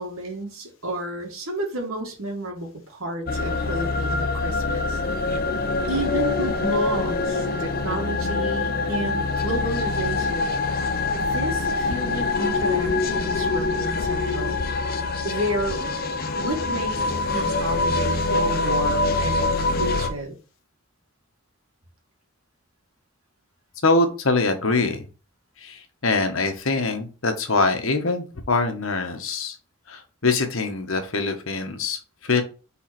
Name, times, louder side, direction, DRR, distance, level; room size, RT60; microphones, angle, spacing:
voice 1, 0.0-5.0 5.9-10.5 11.1-14.6 15.2-15.8 16.4-17.0 17.3-20.4, right 1 dB, 80° right, 2.2 m, -31 dB
sound 1, 3.3-20.1, left 3 dB, 45° left, 0.7 m, -24 dB
voice 2, 23.8-25.1 25.6-29.6 29.9-32.4, left 3 dB, 70° left, 1.3 m, -24 dB
5.9 x 4.0 x 4.4 m
head